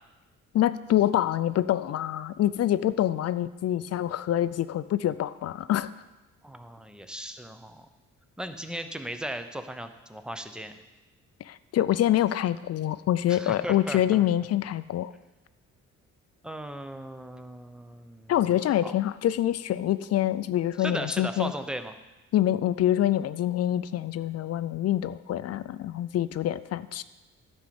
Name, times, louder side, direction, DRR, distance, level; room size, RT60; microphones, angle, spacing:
voice 1, 0.5-5.9 11.5-15.1 18.3-21.5 22.3-27.0, left 12 dB, 55° left, 14 dB, 0.5 m, -26 dB
voice 2, 6.4-7.9 8.4-10.7 13.3-14.2 16.4-18.3 18.8-18.9 20.8-21.9, right 1 dB, 5° right, 8 dB, 0.8 m, -37 dB
10.5 x 5.2 x 7.0 m, 1.1 s
cardioid pair, 90°, 30 cm